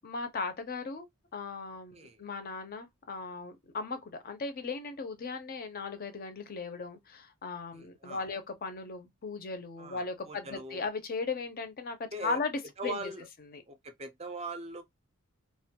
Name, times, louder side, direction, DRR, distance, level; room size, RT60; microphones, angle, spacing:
voice 1, 0.0-1.1 1.3-13.1 13.5-13.6, left 4 dB, 40° left, 0.5 m, -37 dB
voice 2, 7.7-8.3 9.8-10.8 12.1-12.4 12.8-13.3 13.7-14.8, right 2 dB, 30° right, 0.5 m, -41 dB
2.3 x 2.2 x 2.7 m
head